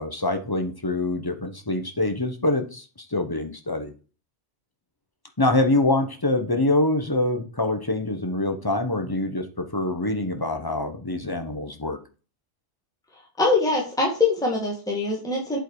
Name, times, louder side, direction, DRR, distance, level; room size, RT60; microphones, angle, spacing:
voice 1, 0.0-3.9 5.4-12.0, left 2 dB, 20° left, 7 dB, 1.0 m, -25 dB
voice 2, 13.4-15.6, left 3 dB, 5° left, -2 dB, 1.9 m, -23 dB
8.0 x 4.6 x 4.7 m, 0.35 s
omnidirectional pair, 1.2 m